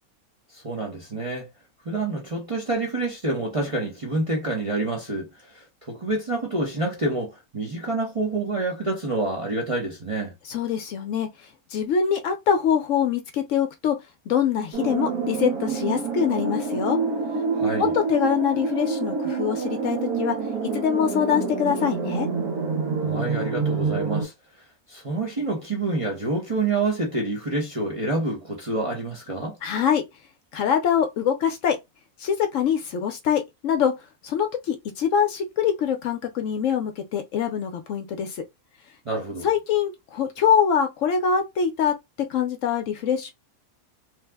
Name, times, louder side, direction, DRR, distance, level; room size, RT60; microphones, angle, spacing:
voice 1, 0.5-1.4 1.8-10.3 17.5-17.9 23.0-24.3 24.9-29.6 39.0-39.5, right 2 dB, 30° right, 0.6 m, -27 dB
voice 2, 10.4-11.3 11.7-14.0 14.3-17.0 17.8-20.4 20.6-22.3 29.6-30.0 30.5-31.8 32.2-33.9 34.2-38.4 39.4-43.3, left 8 dB, 70° left, 0.8 m, -24 dB
sound 1, 14.7-24.3, right 4 dB, 80° right, 1.4 m, -27 dB
3.1 x 2.0 x 3.3 m
omnidirectional pair, 1.5 m